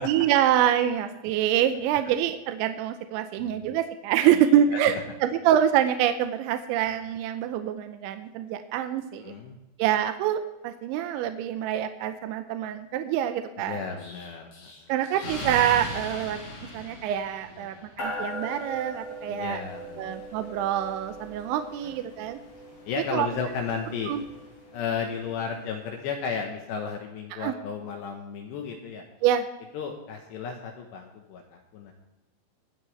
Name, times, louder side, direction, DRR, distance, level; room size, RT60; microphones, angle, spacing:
voice 1, 0.0-9.3 9.8-13.8 14.9-19.6 20.0-22.4 23.0-23.3 24.1-24.2 27.3-27.5 29.2-29.5, right 10 dB, 85° right, 8 dB, 2.7 m, -26 dB
voice 2, 9.2-9.5 13.7-14.7 17.6-17.9 19.3-20.2 22.9-24.1 24.7-29.0 29.7-31.9, left 6 dB, 75° left, 3 dB, 2.7 m, -34 dB
Explosion, 14.0-17.8, left 1 dB, 35° left, 2.8 m, -38 dB
sound 1, 18.0-25.7, equal, 50° left, 6.0 m, -41 dB
22.5 x 8.2 x 3.2 m, 1.0 s
omnidirectional pair, 5.9 m